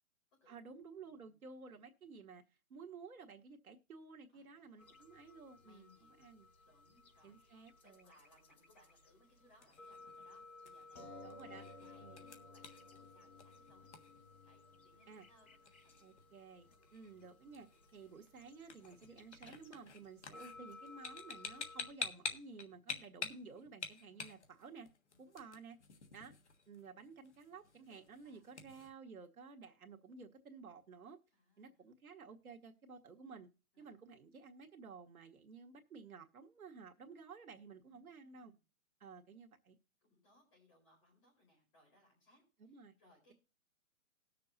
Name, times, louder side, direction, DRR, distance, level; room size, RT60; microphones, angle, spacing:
voice 1, 0.5-5.9 6.2-6.5 7.2-8.1 11.2-11.6 12.0-12.3 15.1-15.2 16.0-17.7 17.9-24.9 25.2-25.8 26.1-26.3 26.7-31.2 31.6-33.5 33.8-38.5 39.0-39.8 42.7-43.0, right 5 dB, 80° right, 3 dB, 1.5 m, -54 dB
voice 2, 1.0-1.4 4.3-5.0 5.6-6.3 6.6-14.0 14.4-16.0 25.1-25.2 28.2-28.5 31.3-31.8 33.7-33.9 37.8-38.6 40.0-43.3, left 1 dB, 20° left, -2 dB, 4.4 m, -70 dB
sound 1, 4.8-9.1 9.4-9.5 9.7-19.8 20.1-21.9, left 3 dB, 90° left, 3.6 m, -57 dB
sound 2, 9.3-28.9, left 5 dB, 55° left, 1.5 m, -50 dB
20.0 x 6.7 x 2.7 m, 0.32 s
hypercardioid pair, 180°, 42 cm